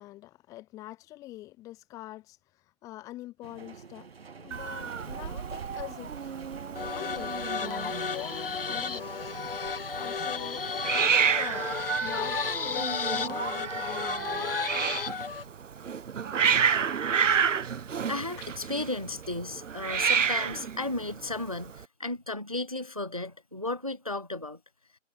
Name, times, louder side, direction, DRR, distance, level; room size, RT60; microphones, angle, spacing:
voice 1, 0.0-2.4 2.8-4.1 4.4-6.3 6.9-9.1 9.9-11.7 12.0-14.6 18.4-18.5, left 16 dB, 10° left, 2.4 m, -43 dB
sound 1, 3.4-12.1, right 5 dB, 50° right, 2.3 m, -48 dB
Hiss, 4.5-21.8, right 7 dB, 70° right, 0.7 m, -30 dB
sound 2, 6.8-15.5, left 5 dB, 45° left, 1.5 m, -33 dB
voice 2, 18.1-24.6, left 2 dB, 30° right, 0.4 m, -34 dB
figure-of-eight pair, 155°, 39 cm